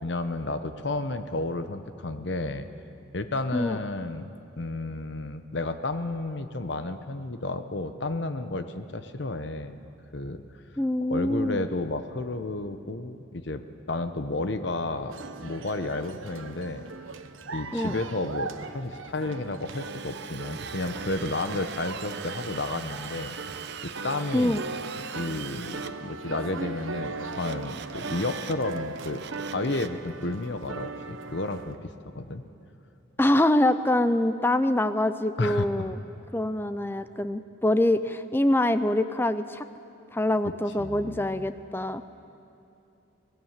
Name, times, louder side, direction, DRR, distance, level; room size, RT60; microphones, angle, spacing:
voice 1, 0.0-2.7 3.1-4.3 4.6-9.8 10.1-10.4 11.1-15.2 15.4-16.8 17.5-23.4 23.8-24.6 25.1-29.2 29.5-31.8 32.1-32.4 35.4-35.9 40.8-41.5, left 2 dB, 60° left, 10 dB, 0.9 m, -32 dB
voice 2, 10.8-11.7 17.7-18.0 24.3-24.6 33.2-36.0 36.3-39.6 40.1-42.0, left 1 dB, 10° left, 12 dB, 0.4 m, -25 dB
sound 1, 15.1-31.8, right 3 dB, 75° right, 1.1 m, -39 dB
Drill, 19.6-25.9 27.3-28.6 29.0-30.0, right 7 dB, 55° right, 0.8 m, -41 dB
25.0 x 19.5 x 7.4 m, 2.8 s
head